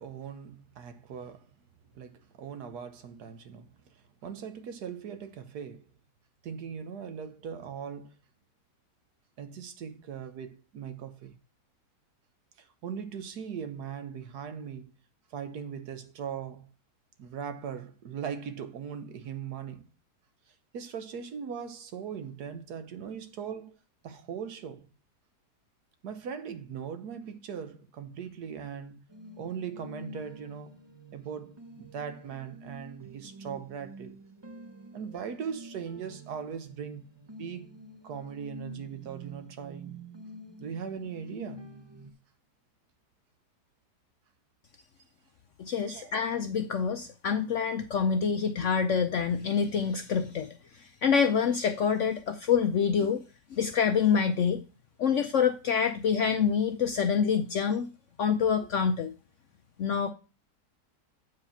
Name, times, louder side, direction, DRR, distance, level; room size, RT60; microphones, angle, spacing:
voice 1, 0.0-1.5 1.9-5.8 6.4-8.1 9.4-11.4 12.6-15.0 15.3-16.7 17.2-19.9 20.7-23.8 24.0-24.9 26.0-29.0 29.4-30.8 31.1-34.2 34.9-37.1 37.4-37.7 38.0-40.0 40.6-41.6 45.8-46.1 58.6-58.7, right 7 dB, 70° right, 1.4 m, -39 dB
sound 1, 29.1-42.1, right 1 dB, 30° right, 0.5 m, -48 dB
voice 2, 45.6-53.2 53.5-54.6 55.0-57.9 58.2-59.1 59.8-60.1, left 6 dB, 65° left, 0.7 m, -26 dB
8.4 x 4.9 x 5.8 m
omnidirectional pair, 1.8 m